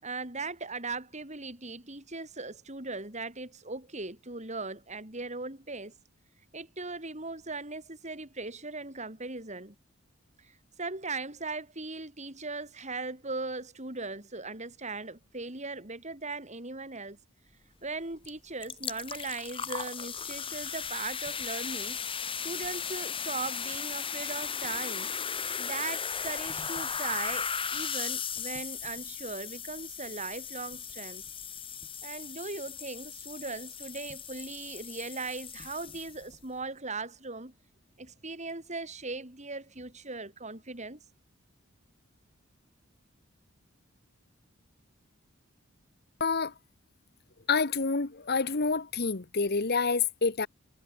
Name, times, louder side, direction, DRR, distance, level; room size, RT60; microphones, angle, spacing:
voice 1, 0.0-5.9 6.5-9.7 10.4-17.2 17.8-22.0 22.4-25.1 25.6-31.2 32.0-37.5 38.0-41.0, right 3 dB, 35° right, 6.4 m, -39 dB
sound 1, 18.2-18.3 18.6-36.4, left 7 dB, 25° left, 4.8 m, -37 dB
voice 2, 46.2-46.5 47.5-50.5, left 4 dB, 50° left, 1.2 m, -28 dB
head